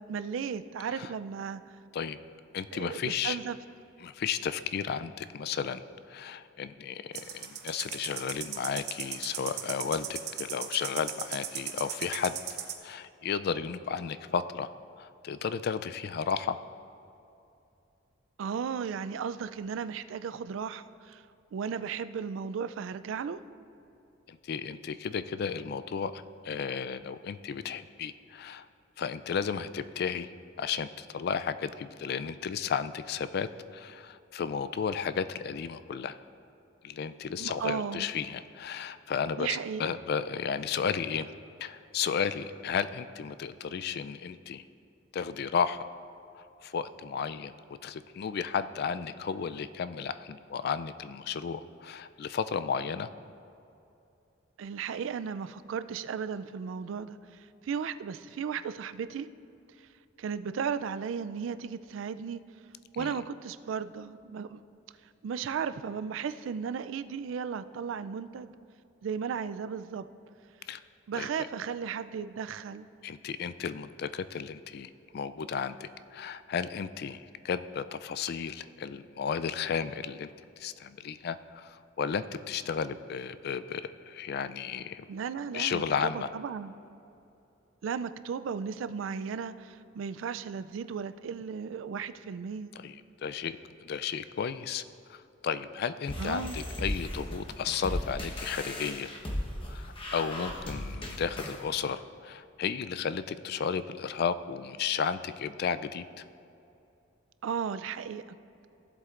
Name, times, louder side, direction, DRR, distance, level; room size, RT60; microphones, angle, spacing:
voice 1, 0.0-1.8 2.7-3.6 18.4-21.2 21.5-23.4 37.4-38.1 39.4-40.0 54.6-59.3 60.2-62.4 63.0-64.6 65.2-68.5 69.0-70.1 71.1-72.9 85.1-86.7 87.8-92.7 96.2-96.6 107.4-108.4, right 6 dB, 80° right, 12 dB, 0.3 m, -35 dB
voice 2, 2.5-3.4 4.0-5.8 6.1-12.4 12.8-14.7 15.0-16.6 24.3-28.7 29.0-30.3 30.6-36.2 36.8-41.3 41.6-44.6 45.1-45.8 46.4-47.5 47.8-53.1 63.0-63.2 70.7-70.8 71.2-71.3 73.0-80.3 80.6-85.1 85.5-86.3 92.8-93.6 93.8-94.8 95.1-99.1 99.7-99.9 100.1-106.1, left 6 dB, 55° left, 13 dB, 0.3 m, -33 dB
sound 1, 7.1-12.7, right 9 dB, 55° right, 0.8 m, -37 dB
sound 2, 96.1-101.6, left 1 dB, 30° left, 1.0 m, -36 dB
16.0 x 7.7 x 2.5 m, 2.8 s
head